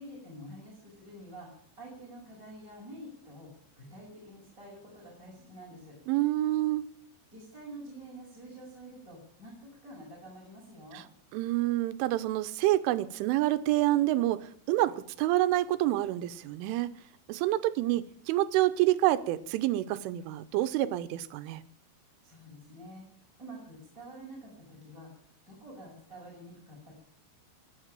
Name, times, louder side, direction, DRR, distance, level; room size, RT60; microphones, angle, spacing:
voice 1, 0.0-6.0 7.3-11.0 22.2-27.0, right 1 dB, 15° right, -4 dB, 7.6 m, -48 dB
voice 2, 6.1-6.9 10.9-11.0 11.3-17.0 17.3-21.6, right 15 dB, 90° right, 13 dB, 3.3 m, -27 dB
20.5 x 7.5 x 8.9 m, 0.64 s
omnidirectional pair, 5.5 m